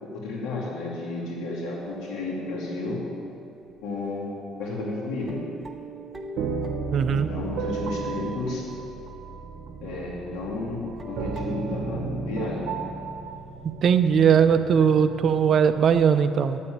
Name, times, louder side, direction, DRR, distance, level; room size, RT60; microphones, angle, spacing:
voice 1, 0.0-3.0 3.8-4.3 4.6-5.4 7.1-8.6 9.8-12.7, left 2 dB, 75° left, -3 dB, 2.6 m, -32 dB
sound 1, 1.8-3.8 4.7-4.8 5.3-9.6 10.2-10.4 10.9-13.8 14.1-14.2 14.8-14.9, right 2 dB, 15° right, 1.0 m, -44 dB
sound 2, 6.4-16.0, right 5 dB, 65° right, 1.0 m, -34 dB
voice 2, 6.9-7.3 13.8-16.6, right 7 dB, 45° right, 10 dB, 0.5 m, -19 dB
10.0 x 7.5 x 9.3 m, 2.6 s
cardioid pair, 120°, 0 cm